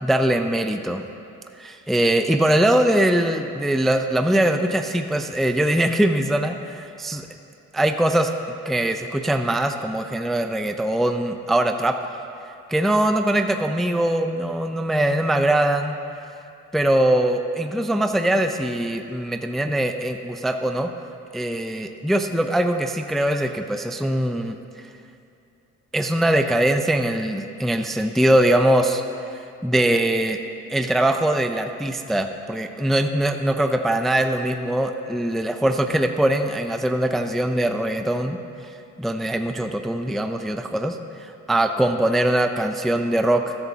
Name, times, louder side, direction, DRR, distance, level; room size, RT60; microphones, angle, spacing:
voice 1, 0.0-1.0 1.6-7.2 7.7-8.3 8.7-12.0 12.7-16.0 16.7-20.9 21.3-24.9 25.9-29.0 29.6-30.4 30.7-38.4 39.0-43.6, right 1 dB, ahead, 6 dB, 0.4 m, -22 dB
13.0 x 12.0 x 2.8 m, 2.6 s
cardioid pair, 90°, 30 cm